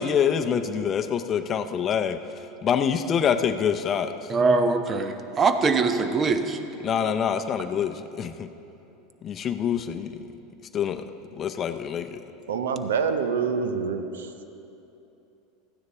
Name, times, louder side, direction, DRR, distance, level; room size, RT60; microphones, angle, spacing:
voice 1, 0.0-2.2 2.6-4.1 6.8-8.5 9.2-10.2 10.7-11.0 11.4-12.2, left 8 dB, 35° left, 9 dB, 0.6 m, -26 dB
voice 2, 4.3-6.6, right 4 dB, 30° right, 8 dB, 0.8 m, -22 dB
voice 3, 12.5-14.0, right 6 dB, 85° right, 9 dB, 0.6 m, -25 dB
13.5 x 9.5 x 4.3 m, 2.9 s
hypercardioid pair, 95°, 0 cm